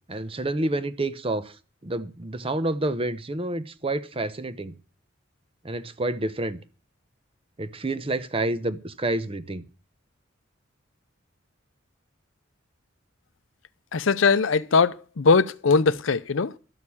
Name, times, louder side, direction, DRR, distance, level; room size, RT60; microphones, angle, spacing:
voice 1, 0.1-1.5 1.8-4.7 5.6-6.6 7.6-9.6, right 2 dB, 30° right, 0.8 m, -28 dB
voice 2, 13.9-16.6, left 4 dB, 70° left, 0.6 m, -21 dB
12.5 x 6.7 x 8.5 m
head